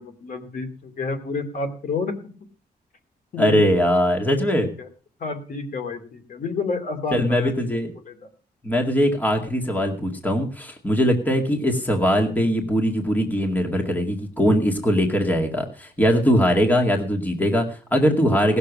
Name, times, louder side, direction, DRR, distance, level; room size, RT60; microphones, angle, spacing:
voice 1, 0.0-2.2 3.3-3.7 4.6-4.9 5.2-8.3 17.6-17.7, left 4 dB, 55° left, 4 dB, 2.7 m, -30 dB
voice 2, 3.4-4.7 7.1-7.9 8.6-18.6, equal, 10° left, 2 dB, 2.1 m, -21 dB
18.5 x 6.9 x 6.2 m, 0.41 s
wide cardioid pair, 145°, 17 cm